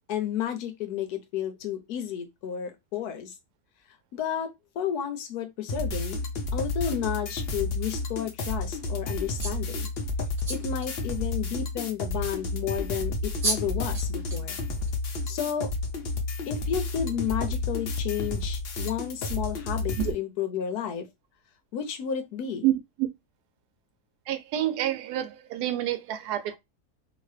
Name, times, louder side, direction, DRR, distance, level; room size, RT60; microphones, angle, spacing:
voice 1, 0.1-3.3 4.1-6.2 6.5-9.9 10.5-14.6 15.3-15.7 16.5-21.1 21.7-22.7, left 9 dB, 80° left, 1.2 m, -32 dB
sound 1, 5.7-20.1, left 3 dB, 55° left, 0.7 m, -31 dB
sound 2, 9.4-9.7 10.4-10.9 11.8-11.9 13.1-13.2 13.4-13.6 13.9-14.4 14.9-15.1, right 2 dB, 25° right, 1.0 m, -31 dB
voice 2, 22.6-23.1 24.3-26.6, right 13 dB, 90° right, 1.2 m, -28 dB
2.9 x 2.7 x 3.2 m
omnidirectional pair, 1.6 m